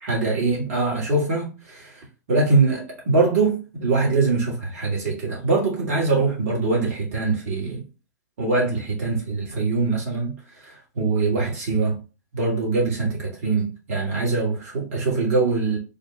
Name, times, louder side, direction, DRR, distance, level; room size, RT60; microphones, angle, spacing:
voice 1, 0.0-7.8 8.4-10.3 10.6-12.0 12.3-15.8, right 3 dB, 55° right, 1.8 m, -23 dB
3.9 x 2.3 x 4.1 m
figure-of-eight pair, 100°, 10 cm